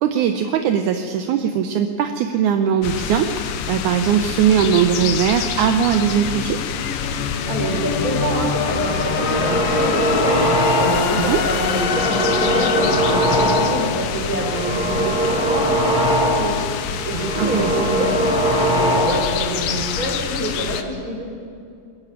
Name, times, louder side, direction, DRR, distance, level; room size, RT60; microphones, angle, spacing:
voice 1, 0.0-6.6 11.2-11.4 17.4-17.9, right 8 dB, 75° right, 7 dB, 2.0 m, -20 dB
sound 1, 2.8-20.8, left 8 dB, 75° left, 2.6 m, -27 dB
sound 2, 4.7-14.9, left 5 dB, 55° left, 2.0 m, -26 dB
voice 2, 7.4-16.7 17.0-21.3, right 1 dB, 25° right, 0 dB, 4.4 m, -26 dB
sound 3, 8.8-11.2 11.6-13.9 14.3-16.7 17.0-19.4, right 1 dB, 5° right, 0.5 m, -21 dB
22.5 x 14.0 x 9.0 m, 2.4 s
omnidirectional pair, 4.0 m